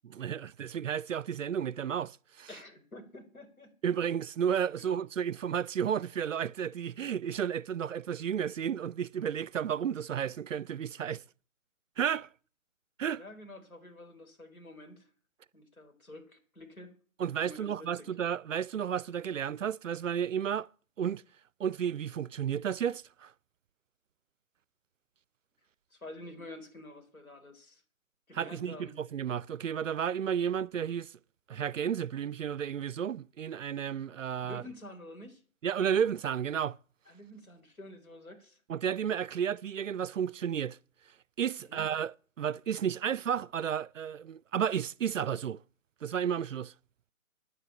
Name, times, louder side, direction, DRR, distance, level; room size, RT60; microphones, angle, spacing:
voice 1, 0.1-2.5 3.8-11.2 12.0-12.3 13.0-13.2 17.2-20.7 21.0-21.2 21.6-23.3 28.3-31.1 31.5-34.6 35.6-36.8 38.7-40.8 41.4-45.6 46.0-46.7, right 8 dB, 65° right, 0.5 m, -32 dB
voice 2, 2.5-3.7 4.8-5.0 13.2-15.1 15.5-16.9 17.4-18.1 25.9-27.8 28.3-29.0 34.4-35.4 37.1-38.6 41.7-41.8, left 1 dB, 90° left, 4.4 m, -48 dB
9.7 x 7.9 x 9.1 m
figure-of-eight pair, 155°, 41 cm